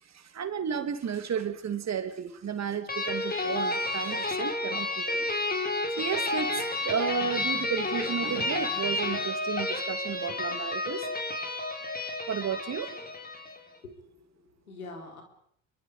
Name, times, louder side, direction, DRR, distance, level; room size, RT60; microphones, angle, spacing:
voice 1, 0.0-5.3 6.0-11.0 12.3-12.9, right 7 dB, 40° right, 8 dB, 2.8 m, -33 dB
sound 1, 2.9-13.6, left 2 dB, 20° left, 4.6 m, -31 dB
voice 2, 13.8-15.2, left 3 dB, 90° left, 3 dB, 4.0 m, -45 dB
27.0 x 23.5 x 5.1 m, 0.69 s
figure-of-eight pair, 55°, 41 cm